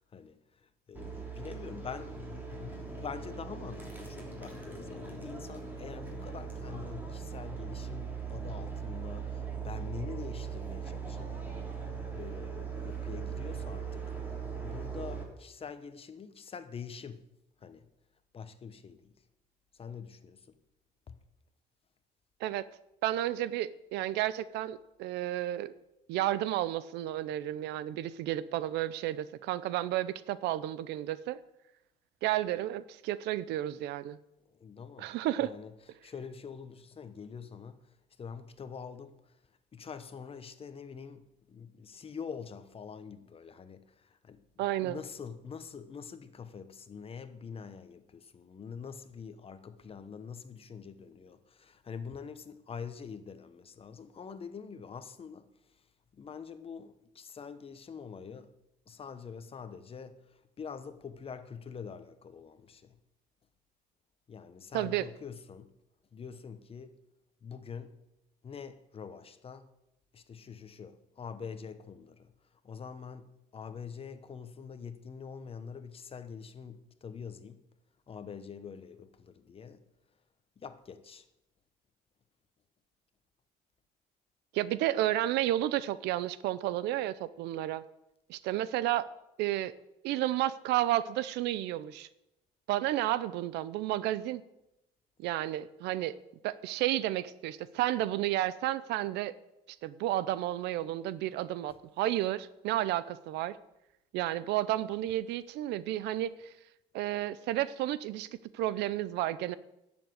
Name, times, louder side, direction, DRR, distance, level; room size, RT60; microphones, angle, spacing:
voice 1, 0.0-11.6 12.1-14.1 14.6-17.2 17.6-17.9 18.3-19.1 19.7-20.4 21.1-21.2 34.5-35.1 35.4-35.7 36.0-37.8 38.2-39.3 39.7-55.5 56.1-58.5 58.9-63.0 64.3-65.7 66.1-67.0 67.4-68.0 68.4-69.7 70.1-72.3 72.6-77.6 78.1-79.8 80.6-81.3, left 6 dB, 35° left, 1.1 m, -45 dB
sound 1, 0.9-15.2, right 6 dB, 10° right, 3.3 m, -40 dB
voice 2, 23.0-25.7 26.1-31.4 32.2-34.2 35.0-35.5 44.6-45.0 64.7-65.1 84.5-87.8 88.3-89.1 89.4-89.7 90.0-92.1 92.7-94.4 95.2-96.2 96.4-99.3 99.8-103.6 104.1-106.3 106.9-108.3 108.5-109.6, right 14 dB, 85° right, 0.7 m, -31 dB
10.5 x 7.4 x 9.4 m
cardioid pair, 110°, 17 cm